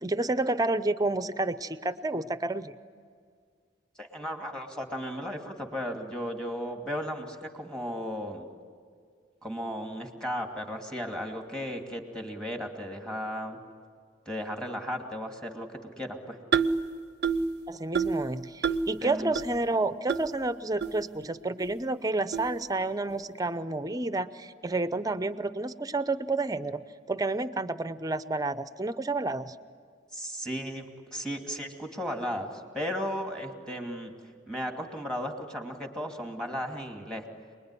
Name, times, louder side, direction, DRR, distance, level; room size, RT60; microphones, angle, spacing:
voice 1, 0.0-2.7 17.7-26.8 27.1-29.5, right 2 dB, 20° right, 13 dB, 0.7 m, -30 dB
voice 2, 4.0-8.5 9.4-13.6 14.3-16.4 19.0-19.3 30.1-30.8 31.1-34.1 34.5-37.2, equal, 5° left, 3 dB, 2.6 m, -35 dB
sound 1, 16.5-16.8 17.2-17.5 17.9-18.2 18.6-18.9 19.3-19.4 20.1-20.2 20.8-20.9 21.6-21.7 22.3-22.5, right 5 dB, 60° right, 0.6 m, -26 dB
28.0 x 21.0 x 10.0 m, 2.1 s
head